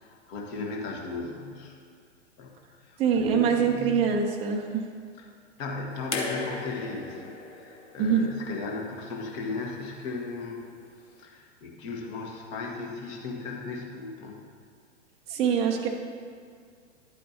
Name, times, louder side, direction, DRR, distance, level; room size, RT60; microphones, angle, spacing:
voice 1, 0.0-1.7 2.4-2.5 2.8-4.0 5.6-10.6 11.2-14.4, left 3 dB, 35° left, 0 dB, 1.4 m, -36 dB
voice 2, 3.0-4.8 8.0-8.2 15.3-15.9, right 7 dB, 15° right, 1 dB, 0.6 m, -24 dB
sound 1, 6.1-9.3 10.5-10.6, left 3 dB, 65° left, 1.3 m, -37 dB
11.0 x 8.4 x 2.8 m, 2.2 s
figure-of-eight pair, 105°, 37 cm